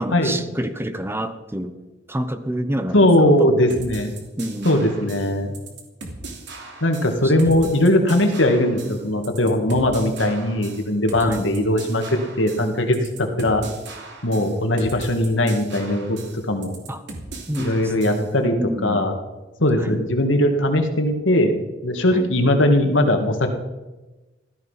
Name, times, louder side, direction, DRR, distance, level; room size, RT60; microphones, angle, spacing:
voice 1, 0.0-1.8 2.1-3.5 4.4-4.9 7.2-7.6 11.2-11.5 16.9-17.0 17.5-18.3 18.6-19.1 19.8-20.0 22.1-22.3, right 1 dB, 15° right, 10 dB, 1.0 m, -28 dB
voice 2, 2.9-4.1 4.6-5.6 6.8-13.6 14.2-16.7 17.6-18.6 18.8-19.2 19.6-21.5 21.8-23.5, left 1 dB, 80° left, 4 dB, 2.3 m, -19 dB
sound 1, 3.7-18.3, right 3 dB, 70° right, 3.1 m, -38 dB
16.0 x 13.5 x 5.8 m, 1.1 s
head